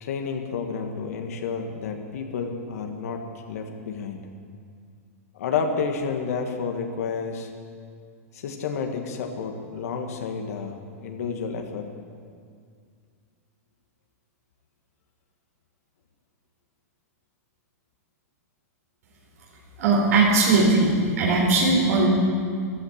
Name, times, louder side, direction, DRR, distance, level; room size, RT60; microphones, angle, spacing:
voice 1, 0.0-4.2 5.3-7.5 8.3-11.9, left 5 dB, 70° left, 4 dB, 1.6 m, -30 dB
voice 2, 19.8-20.9 21.2-22.1, right 3 dB, 75° right, -4 dB, 4.5 m, -19 dB
15.0 x 11.5 x 7.3 m, 2.2 s
hypercardioid pair, 145°, 9 cm